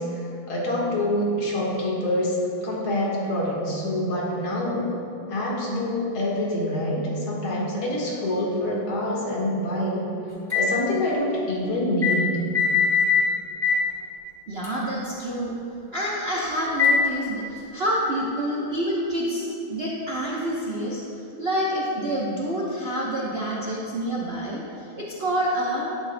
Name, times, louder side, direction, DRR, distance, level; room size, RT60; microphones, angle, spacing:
voice 1, 0.0-2.4 2.6-4.9 5.3-10.0 10.5-12.4, left 1 dB, 75° left, -4 dB, 2.4 m, -26 dB
sound 1, 10.5-10.7 12.0-12.2 12.5-13.3 13.6-13.8 14.6-14.7 16.8-17.1, left 5 dB, 15° left, 1.2 m, -20 dB
voice 2, 14.5-15.5 15.9-21.0 21.4-25.9, equal, 55° right, -6 dB, 0.7 m, -27 dB
11.5 x 9.1 x 2.2 m, 3.0 s
omnidirectional pair, 2.3 m